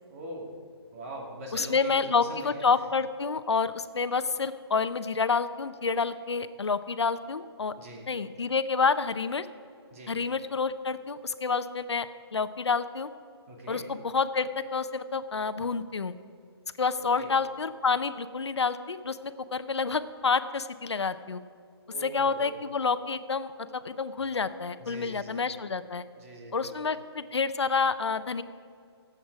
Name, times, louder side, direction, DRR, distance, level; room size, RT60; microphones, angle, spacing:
voice 1, 0.1-0.5 0.9-2.6 7.8-8.0 9.9-10.1 13.5-13.8 17.2-17.3 21.9-22.6 24.8-25.4 26.2-26.9, right 1 dB, 30° right, -1 dB, 2.4 m, -42 dB
voice 2, 1.5-7.7 8.1-9.5 10.1-13.1 13.7-16.1 16.8-19.2 19.5-21.4 22.0-26.0 26.5-28.4, left 5 dB, 90° left, 13 dB, 0.7 m, -28 dB
18.5 x 8.1 x 4.7 m, 2.3 s
hypercardioid pair, 160°, 14 cm